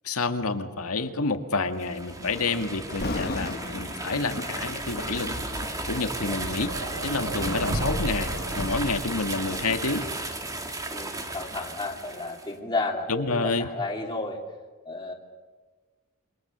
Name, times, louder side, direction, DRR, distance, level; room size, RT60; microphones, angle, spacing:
voice 1, 0.0-5.3 5.9-6.7 7.0-10.1 13.1-13.7, left 3 dB, 85° left, 7 dB, 1.9 m, -28 dB
sound 1, 1.7-12.5, right 2 dB, 15° right, 2.1 m, -35 dB
Thunder, 2.9-7.9 8.5-8.8 9.4-12.2 12.5-12.6, left 2 dB, 45° left, 1.3 m, -38 dB
sound 2, 4.8-9.7, right 1 dB, 80° right, 5.3 m, -34 dB
voice 2, 10.9-14.4 14.8-15.1, left 2 dB, 20° left, -1 dB, 3.1 m, -32 dB
28.0 x 25.5 x 6.8 m, 1.4 s
head